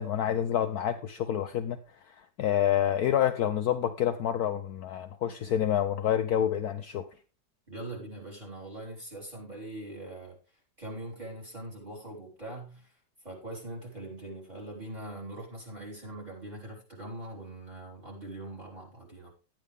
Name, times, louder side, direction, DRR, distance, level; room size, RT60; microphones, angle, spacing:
voice 1, 0.0-1.8 2.1-7.1, left 10 dB, 65° left, 1.0 m, -28 dB
voice 2, 7.7-10.4 10.8-12.9 13.2-19.3, right 1 dB, 20° right, 4.4 m, -42 dB
12.0 x 9.7 x 3.6 m
omnidirectional pair, 2.0 m